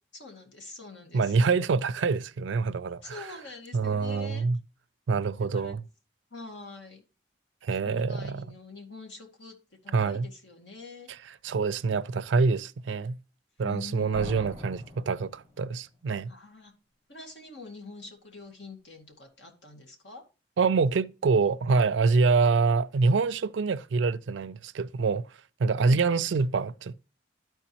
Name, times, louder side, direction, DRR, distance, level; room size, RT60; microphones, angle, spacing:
voice 1, 0.1-1.4 3.0-4.5 5.5-5.8 6.3-7.0 7.8-11.1 13.6-14.5 16.3-16.7 17.1-20.2 25.8-26.0, left 3 dB, 70° left, 2.0 m, -45 dB
voice 2, 1.1-3.1 3.7-4.6 5.1-5.8 7.6-8.4 9.9-10.3 11.4-13.2 13.6-16.3 20.6-25.2 25.6-26.9, right 4 dB, 75° right, 0.4 m, -25 dB
sound 1, 14.1-15.9, left 1 dB, 35° left, 4.8 m, -43 dB
13.0 x 4.6 x 2.9 m
head